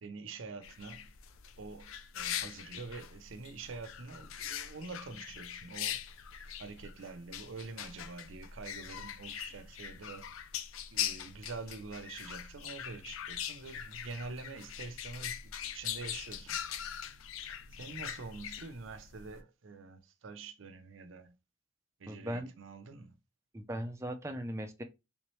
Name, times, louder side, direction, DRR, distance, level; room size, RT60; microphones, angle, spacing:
voice 1, 0.0-1.1 1.6-6.0 6.6-10.3 10.9-16.6 17.3-21.3 22.0-23.1, right 4 dB, 70° right, 0.6 m, -46 dB
sound 1, 0.6-19.4, left 9 dB, 90° left, 0.5 m, -42 dB
voice 2, 22.1-22.5 23.5-24.8, equal, 15° right, 0.5 m, -38 dB
3.4 x 3.0 x 3.1 m
head